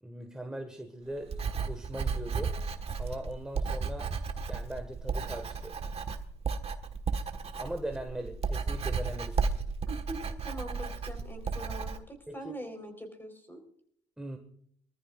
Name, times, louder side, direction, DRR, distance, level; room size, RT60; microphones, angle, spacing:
voice 1, 0.0-2.6 2.9-4.1 4.5-5.8 7.5-9.5 12.3-12.5 14.2-14.4, right 1 dB, 5° right, 5 dB, 1.5 m, -40 dB
Writing, 1.2-12.0, right 5 dB, 35° right, 1.4 m, -34 dB
voice 2, 9.9-13.6, right 1 dB, 10° left, 6 dB, 4.0 m, -43 dB
24.0 x 14.0 x 2.4 m, 0.66 s
cardioid pair, 110°, 17 cm